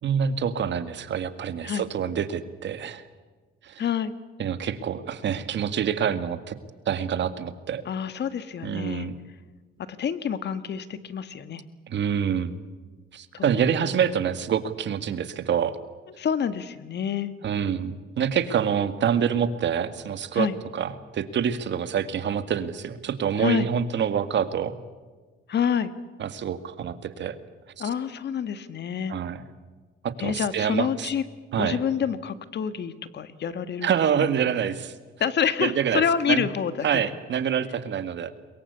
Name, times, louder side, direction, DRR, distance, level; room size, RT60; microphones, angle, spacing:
voice 1, 0.0-3.0 3.6-3.8 4.4-6.6 6.9-7.8 8.6-9.2 11.9-12.5 13.1-15.8 17.4-20.5 20.7-24.7 26.2-27.4 29.1-29.4 30.0-31.1 31.5-31.8 33.8-34.9 35.6-36.4 36.8-38.3, right 8 dB, 65° right, 12 dB, 2.0 m, -26 dB
voice 2, 3.8-4.1 7.8-9.1 10.0-11.6 13.3-13.5 13.8-13.9 16.2-17.3 20.3-20.5 23.4-23.7 25.5-25.9 27.8-29.1 30.2-31.2 31.6-33.9 35.2-37.0, left 7 dB, 60° left, 12 dB, 1.8 m, -27 dB
23.0 x 22.5 x 8.4 m, 1.4 s
cardioid pair, 90°, 20 cm